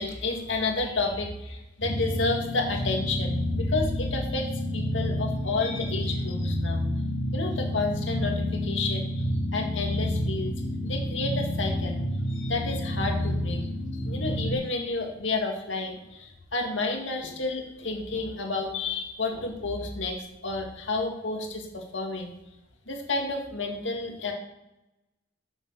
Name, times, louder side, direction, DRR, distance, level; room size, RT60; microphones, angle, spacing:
voice 1, 0.0-4.5 4.7-6.8 7.3-10.5 10.8-12.0 12.3-13.7 14.0-20.2 20.4-22.3 22.9-24.3, left 3 dB, 75° left, 2 dB, 2.0 m, -31 dB
sound 1, 1.8-14.5, left 1 dB, 10° left, 2.7 m, -29 dB
8.8 x 6.6 x 6.4 m, 0.95 s
head